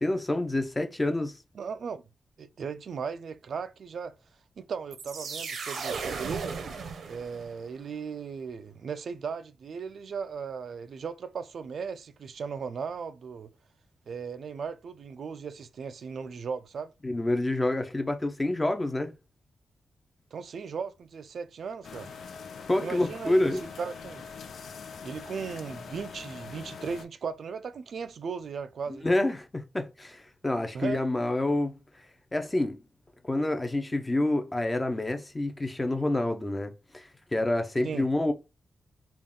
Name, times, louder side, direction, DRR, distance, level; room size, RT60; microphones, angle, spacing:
voice 1, 0.0-1.4 17.0-19.1 22.6-23.6 29.0-31.7 32.3-32.8 33.3-38.3, left 1 dB, 15° left, 0.5 m, -28 dB
voice 2, 1.5-2.0 2.4-4.1 4.6-6.6 7.1-13.5 14.1-16.9 20.3-22.1 22.8-24.3 25.0-29.1 30.7-31.0 37.8-38.1, right 6 dB, 65° right, 0.3 m, -37 dB
sound 1, 4.9-7.7, right 5 dB, 90° right, 0.7 m, -36 dB
sound 2, 21.8-27.0, left 5 dB, 90° left, 0.4 m, -43 dB
3.5 x 2.3 x 3.7 m
wide cardioid pair, 155°, 0 cm